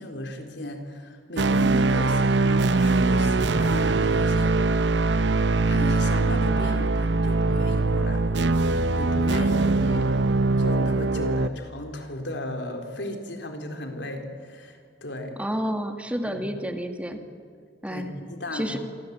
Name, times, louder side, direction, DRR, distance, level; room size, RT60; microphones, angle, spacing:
voice 1, 0.0-4.5 5.6-10.1 10.6-15.3 16.2-16.4 17.1-17.2 17.9-18.8, left 1 dB, 80° left, 4 dB, 4.1 m, -35 dB
sound 1, 1.4-11.5, right 3 dB, 75° right, 0.8 m, -22 dB
voice 2, 15.4-17.2 17.8-18.1 18.5-18.8, equal, 5° right, 5 dB, 1.7 m, -30 dB
27.5 x 23.5 x 8.5 m, 2.1 s
head